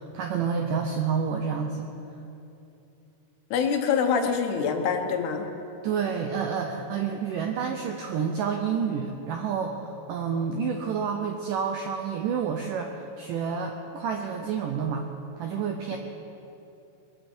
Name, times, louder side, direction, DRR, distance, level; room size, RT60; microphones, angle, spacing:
voice 1, 0.0-1.9 5.8-15.1 15.4-16.0, right 6 dB, 80° right, 3 dB, 1.9 m, -29 dB
voice 2, 3.5-5.5 15.9-16.0, left 6 dB, 75° left, 5 dB, 3.0 m, -25 dB
21.0 x 14.5 x 4.4 m, 2.8 s
omnidirectional pair, 4.9 m